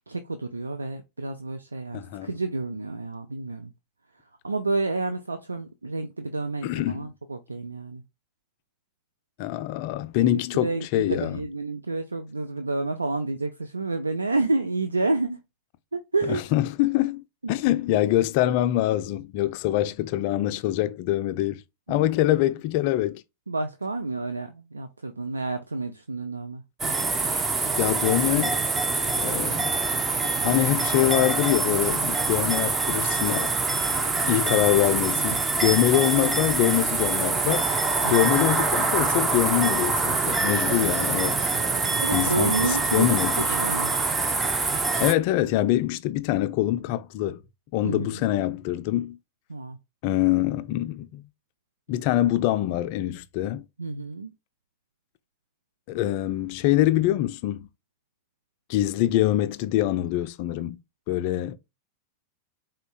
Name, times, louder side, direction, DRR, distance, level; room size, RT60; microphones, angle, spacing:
voice 1, 0.1-3.7 4.4-8.0 10.2-15.4 15.9-16.4 17.4-17.5 21.9-22.1 23.5-26.6 38.0-38.3 42.0-43.9 47.8-48.2 49.5-49.8 53.8-54.3, right 3 dB, 80° right, 0.3 m, -29 dB
voice 2, 1.9-2.3 6.6-7.1 9.4-11.4 16.3-21.6 21.9-23.2 27.8-28.6 29.1-29.8 30.2-33.5 34.2-37.7 38.1-41.4 42.1-43.6 45.0-47.4 47.7-49.2 50.0-51.2 51.9-53.6 55.9-57.7 58.7-60.8 61.1-61.6, left 14 dB, 45° left, 0.3 m, -24 dB
sound 1, 26.8-45.1, right 3 dB, 15° right, 0.5 m, -25 dB
3.8 x 2.2 x 3.7 m
figure-of-eight pair, 90°, 0 cm